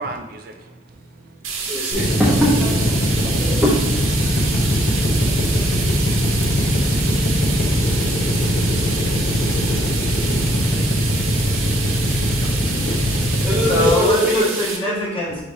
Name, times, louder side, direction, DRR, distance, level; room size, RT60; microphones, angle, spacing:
voice 1, 0.0-2.2 6.7-7.5 9.8-10.7 12.2-12.7 13.0-13.5, right 2 dB, 45° right, 5 dB, 0.4 m, -40 dB
sound 1, 1.4-14.8, right 5 dB, 85° right, 0.7 m, -28 dB
voice 2, 1.7-2.7 3.2-3.7 13.4-14.4, left 1 dB, 5° right, -7 dB, 0.7 m, -20 dB
Drill, 1.9-13.9, equal, 50° left, 0.7 m, -20 dB
voice 3, 13.7-15.4, left 1 dB, 25° left, -8 dB, 1.3 m, -23 dB
4.8 x 3.1 x 2.6 m, 0.92 s
head